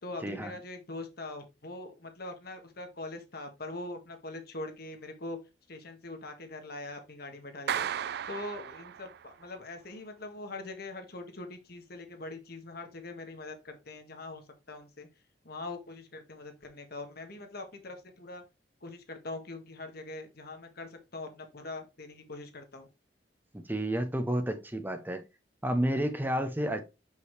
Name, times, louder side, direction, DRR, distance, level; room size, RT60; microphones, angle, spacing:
voice 1, 0.0-5.4 5.7-7.9 8.3-15.1 15.4-18.4 18.8-22.9, left 2 dB, 60° left, 1.5 m, -42 dB
Clapping, 7.7-9.4, right 9 dB, 60° right, 0.4 m, -35 dB
voice 2, 23.5-25.2 25.6-26.8, right 1 dB, 10° right, 0.7 m, -30 dB
6.2 x 5.6 x 3.2 m
head